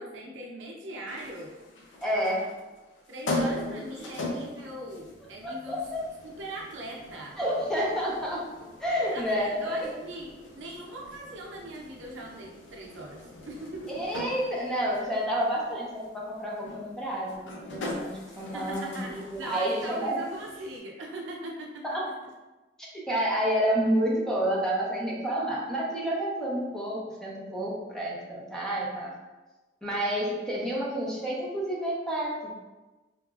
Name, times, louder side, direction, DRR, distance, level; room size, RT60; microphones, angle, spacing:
voice 1, 0.0-1.6 3.1-5.8 6.2-7.4 9.1-14.0 18.5-22.0, right 1 dB, 85° right, -1 dB, 0.5 m, -40 dB
sound 1, 1.1-20.8, left 1 dB, 75° left, 0.5 m, -40 dB
voice 2, 2.0-2.5 3.4-3.8 5.4-6.0 7.4-8.5 8.8-9.9 14.0-15.9 16.1-20.2 21.8-22.0 22.8-29.1 29.8-32.5, equal, 5° left, -5 dB, 0.5 m, -29 dB
2.9 x 2.4 x 2.3 m, 1.2 s
head